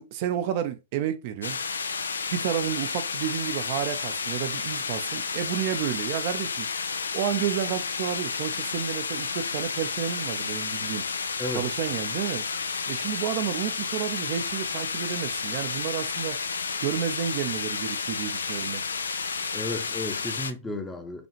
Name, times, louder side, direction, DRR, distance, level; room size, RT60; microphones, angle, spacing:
voice 1, 0.0-1.6 2.3-6.7 7.1-11.1 11.5-12.5 12.9-16.4 16.8-18.8, right 10 dB, 50° right, 0.5 m, -31 dB
sound 1, 1.4-20.5, left 5 dB, 85° left, 0.4 m, -31 dB
voice 2, 11.4-11.7 19.5-21.3, left 2 dB, 15° left, 0.7 m, -33 dB
5.0 x 2.4 x 3.0 m
hypercardioid pair, 115°, 0 cm